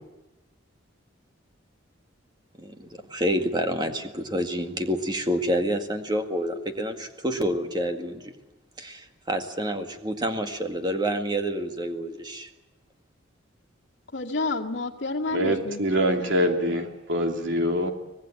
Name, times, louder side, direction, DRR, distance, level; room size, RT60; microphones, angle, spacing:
voice 1, 2.6-8.3 8.8-12.5, equal, 20° right, 5 dB, 2.0 m, -28 dB
voice 2, 14.1-16.6, left 3 dB, 60° left, -1 dB, 2.0 m, -30 dB
voice 3, 15.3-17.9, equal, 70° right, 4 dB, 2.9 m, -24 dB
25.0 x 19.0 x 8.8 m, 1.0 s
head